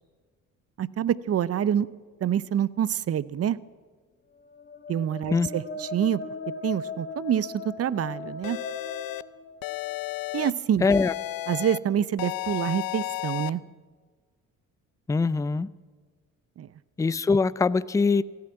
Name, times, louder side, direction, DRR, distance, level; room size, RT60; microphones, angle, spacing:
voice 1, 0.8-1.9 2.2-3.6 4.9-6.2 6.6-8.6 10.3-10.9 11.5-13.6 16.6-16.7, right 9 dB, 40° right, 20 dB, 0.6 m, -26 dB
sound 1, 4.4-10.2, left 3 dB, 30° left, 1.2 m, -39 dB
sound 2, 8.4-9.2 9.6-10.5 10.9-11.8 12.2-13.5, left 16 dB, 70° left, 0.6 m, -33 dB
voice 2, 10.8-11.1 15.1-15.7 17.0-18.2, left 4 dB, 10° left, 19 dB, 0.4 m, -22 dB
15.5 x 9.5 x 8.9 m, 1.5 s
supercardioid pair, 60°, 37 cm